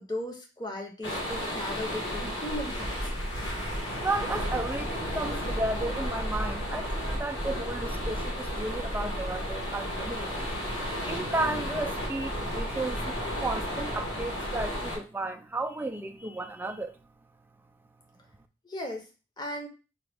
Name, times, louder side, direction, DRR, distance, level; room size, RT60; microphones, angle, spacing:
voice 1, 0.0-2.9 18.6-19.1 19.4-19.7, left 1 dB, 20° left, 0.7 m, -36 dB
sound 1, 1.0-15.0, equal, 75° left, 1.6 m, -33 dB
voice 2, 4.0-10.5 11.1-17.0, right 2 dB, 10° right, 0.3 m, -33 dB
4.9 x 2.3 x 3.3 m
head